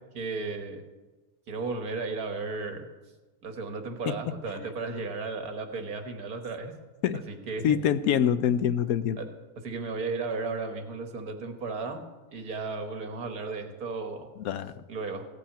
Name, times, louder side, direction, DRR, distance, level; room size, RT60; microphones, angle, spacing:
voice 1, 0.1-0.8 1.5-2.9 3.4-6.7 7.3-7.8 9.2-9.3 9.6-12.0 12.3-14.3 14.9-15.3, right 3 dB, 80° right, 6 dB, 1.9 m, -34 dB
voice 2, 7.6-9.2 14.4-14.7, left 9 dB, 75° left, 13 dB, 1.1 m, -25 dB
16.0 x 5.7 x 8.7 m, 1.2 s
omnidirectional pair, 1.6 m